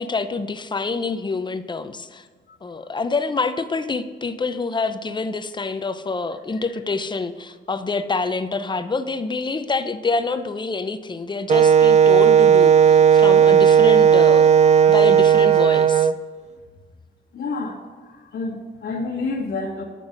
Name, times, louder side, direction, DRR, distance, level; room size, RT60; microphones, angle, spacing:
voice 1, 0.0-2.2 2.6-14.5 14.9-16.1, left 4 dB, 25° left, 11 dB, 0.6 m, -26 dB
Wind instrument woodwind instrument, 11.5-16.1, right 8 dB, 35° right, 0.4 m, -14 dB
voice 2, 17.3-17.8 18.3-19.8, left 3 dB, 60° left, -4 dB, 1.5 m, -28 dB
8.8 x 6.0 x 5.2 m, 1.5 s
cardioid pair, 90°, 20 cm